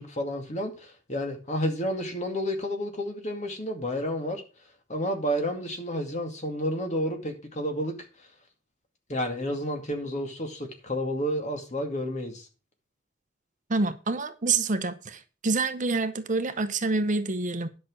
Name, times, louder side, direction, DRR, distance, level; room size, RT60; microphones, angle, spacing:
voice 1, 0.0-4.4 4.9-8.0 9.1-12.5, equal, 35° left, 2.3 m, -30 dB
voice 2, 13.7-17.7, right 3 dB, 40° right, 0.8 m, -27 dB
10.5 x 6.1 x 6.2 m
head